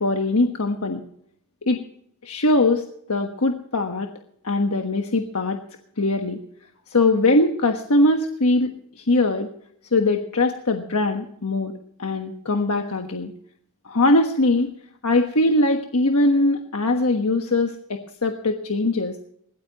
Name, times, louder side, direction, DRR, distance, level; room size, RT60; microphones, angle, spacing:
voice 1, 0.0-1.0 1.6-1.8 2.2-2.8 3.1-4.1 4.4-5.6 6.0-6.4 6.9-8.7 9.0-9.5 9.9-11.7 12.0-13.3 13.8-14.7 15.0-19.2, left 2 dB, 75° left, 4 dB, 1.3 m, -21 dB
21.5 x 17.5 x 3.0 m, 0.69 s
head